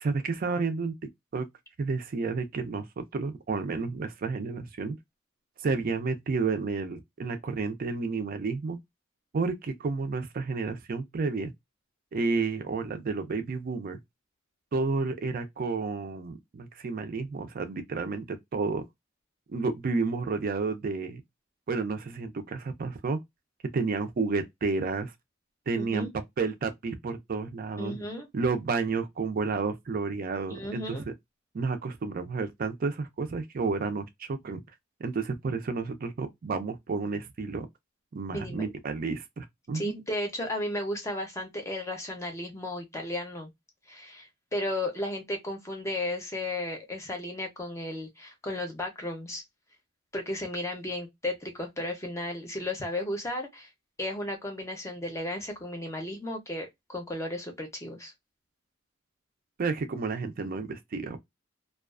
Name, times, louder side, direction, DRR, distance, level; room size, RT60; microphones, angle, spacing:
voice 1, 0.0-0.9 1.3-1.5 1.8-5.0 5.6-8.8 9.3-11.5 12.1-14.0 14.7-18.8 19.5-21.2 21.7-23.2 23.7-25.1 25.7-26.1 26.4-28.0 28.3-31.0 31.5-34.6 35.0-37.7 38.1-39.9 59.6-61.2, right 4 dB, 45° right, 0.4 m, -31 dB
voice 2, 25.8-26.1 27.8-28.3 30.5-31.0 38.3-38.7 39.7-43.5 43.9-49.4 50.1-53.7 54.0-58.1, left 1 dB, 15° left, 0.6 m, -34 dB
2.3 x 2.2 x 2.3 m
head